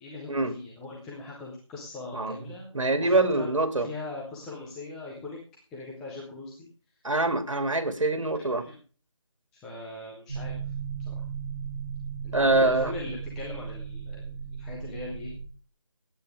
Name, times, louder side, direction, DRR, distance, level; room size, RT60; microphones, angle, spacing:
voice 1, 0.0-3.5 3.7-5.4 5.7-6.7 8.3-8.8 9.5-10.6 11.1-11.2 12.2-15.3, left 3 dB, ahead, -5 dB, 0.5 m, -40 dB
voice 2, 2.7-3.9 7.0-8.6 12.3-12.9, right 2 dB, 75° right, 8 dB, 2.4 m, -24 dB
sound 1, 10.3-15.4, right 6 dB, 25° right, 6.5 m, -36 dB
19.0 x 9.0 x 3.4 m, 0.38 s
figure-of-eight pair, 160°, 16 cm